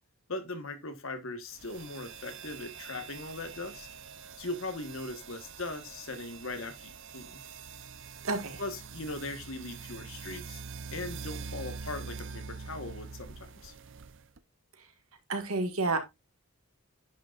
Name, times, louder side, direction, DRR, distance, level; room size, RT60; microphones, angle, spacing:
voice 1, 0.3-3.9 4.4-7.4 8.6-10.6 10.9-13.7, left 2 dB, 60° left, 1.4 m, -39 dB
sound 1, 1.5-14.4, right 5 dB, 55° right, 0.6 m, -45 dB
voice 2, 8.2-8.6 15.3-16.0, right 3 dB, 70° right, 1.8 m, -29 dB
10.0 x 6.5 x 2.5 m
head